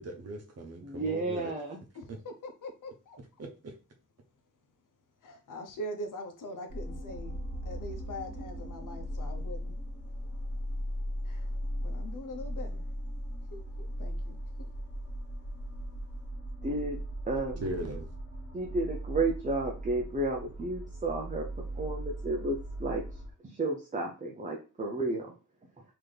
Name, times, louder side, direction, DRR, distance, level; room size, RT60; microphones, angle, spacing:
voice 1, 0.0-1.5 3.4-3.7 17.6-18.1, right 1 dB, 50° right, 0.9 m, -38 dB
voice 2, 0.8-1.8 16.6-17.0 17.3-17.6 18.5-23.1 23.4-25.3, right 2 dB, 25° right, 0.5 m, -32 dB
voice 3, 1.9-3.2 5.2-9.8 11.2-12.9 13.4-14.7, equal, 80° left, 0.9 m, -43 dB
sound 1, 6.7-23.3, equal, 45° left, 1.5 m, -38 dB
3.9 x 2.9 x 3.3 m
wide cardioid pair, 175°, 31 cm